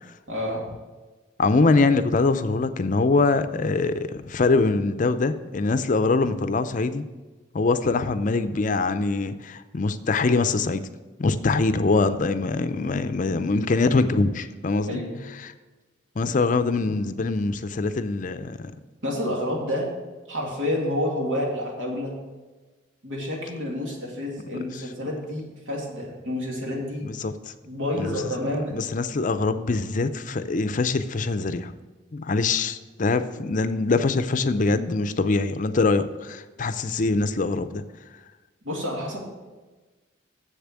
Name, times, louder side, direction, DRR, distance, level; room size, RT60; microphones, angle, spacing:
voice 1, 0.3-0.7 14.9-15.2 19.0-19.9 20.3-22.1 23.0-27.1 27.7-28.8 38.6-39.2, left 1 dB, 85° right, -2 dB, 2.5 m, -29 dB
voice 2, 1.4-7.0 7.5-10.8 11.2-15.0 15.4-15.5 16.2-18.6 27.0-27.3 27.9-28.3 28.7-31.7 32.1-37.8, left 3 dB, 40° left, 11 dB, 0.5 m, -23 dB
7.3 x 6.9 x 7.4 m, 1.3 s
head